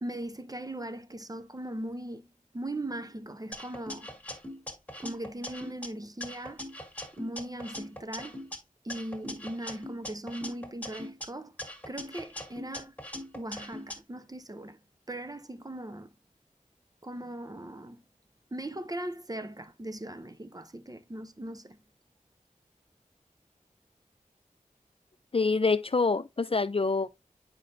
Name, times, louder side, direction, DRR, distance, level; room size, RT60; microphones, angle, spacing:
voice 1, 0.0-2.3 2.5-4.1 5.0-6.6 7.2-8.4 8.8-11.5 11.9-12.9 13.3-14.8 15.1-16.1 17.0-18.0 18.5-21.8, right 1 dB, 25° right, 0.7 m, -39 dB
sound 1, 3.5-5.9 6.2-8.6 8.9-11.3 11.6-14.0, left 1 dB, 10° left, 1.9 m, -41 dB
voice 2, 25.3-27.1, left 4 dB, 45° left, 0.4 m, -26 dB
8.5 x 5.3 x 2.6 m
wide cardioid pair, 50°, 14 cm